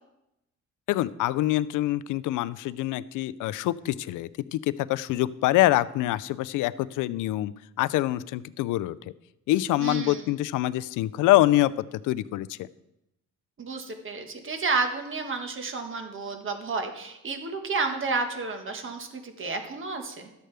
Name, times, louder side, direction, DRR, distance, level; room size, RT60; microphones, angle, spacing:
voice 1, 0.9-7.5 7.8-9.1 9.5-11.7 12.0-12.6, left 16 dB, 85° left, 17 dB, 0.5 m, -25 dB
voice 2, 9.8-10.3 13.6-20.3, right 4 dB, 40° right, 5 dB, 1.5 m, -31 dB
12.5 x 7.6 x 3.4 m, 0.88 s
cardioid pair, 90°, 30 cm